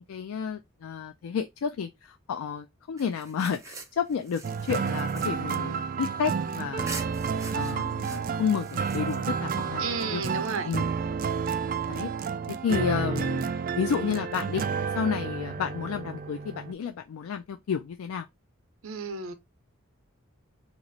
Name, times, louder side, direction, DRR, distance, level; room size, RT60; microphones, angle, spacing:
voice 1, 0.1-7.0 7.5-10.2 10.6-10.9 11.9-12.1 12.5-13.5 13.7-14.6 14.9-18.3, left 7 dB, 85° left, 0.3 m, -31 dB
sound 1, 3.0-6.4 6.9-9.6, right 3 dB, 15° right, 0.7 m, -44 dB
sound 2, 4.4-16.7, right 6 dB, 40° right, 0.3 m, -30 dB
voice 2, 9.8-10.7 18.8-19.3, right 4 dB, 70° right, 0.7 m, -32 dB
3.0 x 2.4 x 3.9 m
head